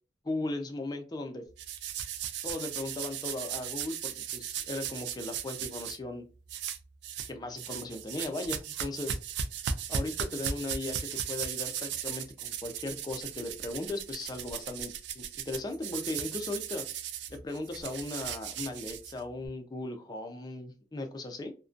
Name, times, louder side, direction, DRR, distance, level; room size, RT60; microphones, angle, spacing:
voice 1, 0.2-1.5 2.4-6.2 7.3-9.2 9.9-16.9 17.3-21.5, left 2 dB, 25° left, 5 dB, 0.4 m, -37 dB
sound 1, 1.6-6.0 6.5-7.3 7.6-19.5, right 8 dB, 75° right, 0.3 m, -37 dB
2.5 x 2.1 x 2.4 m, 0.34 s
head